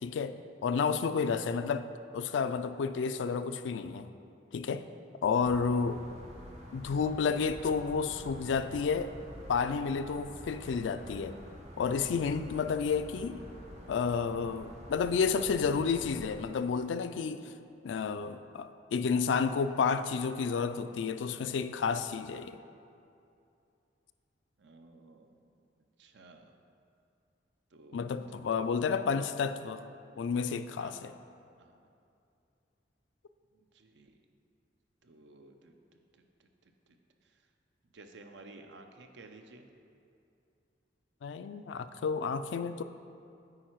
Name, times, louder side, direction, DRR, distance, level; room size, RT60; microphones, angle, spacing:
voice 1, 0.0-1.9 2.1-4.1 4.5-4.8 5.2-6.0 6.7-9.1 9.5-11.4 11.8-13.4 13.9-17.5 17.8-22.6 27.9-29.8 30.2-31.1 41.2-42.8, left 5 dB, 90° left, 11 dB, 0.3 m, -31 dB
sound 1, 5.4-16.4, equal, 40° right, 1.0 m, -48 dB
voice 2, 24.6-25.6 26.0-26.5 27.7-28.4 28.9-29.3 30.8-31.0 31.6-31.9 33.5-34.2 35.0-36.5 36.9-37.0 37.2-37.5 37.9-39.7, right 3 dB, 75° right, 5 dB, 0.6 m, -55 dB
8.7 x 4.8 x 4.6 m, 2.6 s
head